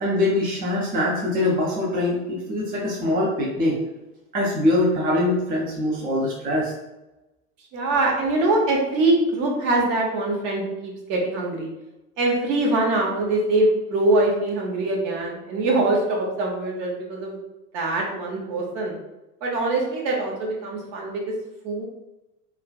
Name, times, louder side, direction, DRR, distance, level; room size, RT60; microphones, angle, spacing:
voice 1, 0.0-3.8 4.3-6.7, left 1 dB, 20° right, -4 dB, 0.5 m, -23 dB
voice 2, 7.7-11.7 12.2-17.4 17.7-18.9 19.4-21.3 21.6-21.8, right 2 dB, 45° right, -1 dB, 0.8 m, -23 dB
2.5 x 2.1 x 2.3 m, 1.0 s
hypercardioid pair, 85°, 45 cm